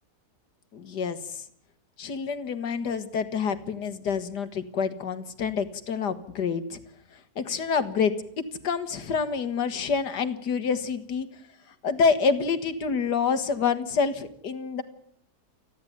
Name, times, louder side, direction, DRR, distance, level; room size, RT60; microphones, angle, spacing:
voice 1, 0.7-1.4 2.0-6.8 7.4-11.3 11.8-14.8, left 5 dB, 75° left, 10 dB, 2.1 m, -27 dB
28.5 x 10.5 x 9.4 m, 0.70 s
omnidirectional pair, 1.8 m